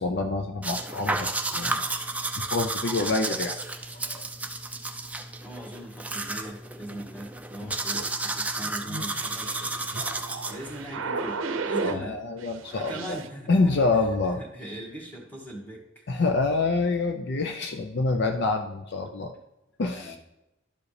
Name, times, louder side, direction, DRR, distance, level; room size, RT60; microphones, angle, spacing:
voice 1, 0.0-1.8 2.3-3.6 3.9-4.3 7.6-7.7 11.8-13.2 13.5-14.4 16.1-19.4 19.8-20.2, left 3 dB, 55° left, 6 dB, 0.5 m, -27 dB
sound 1, 0.6-10.8, right 2 dB, 5° right, 0.5 m, -32 dB
voice 2, 5.4-9.5 10.4-12.2 12.7-13.7 14.5-16.0 19.9-20.2, right 1 dB, 10° left, -3 dB, 1.9 m, -40 dB
sound 2, 7.9-12.1 12.4-13.3, right 4 dB, 75° right, 0.7 m, -34 dB
12.0 x 4.9 x 3.3 m, 0.93 s
head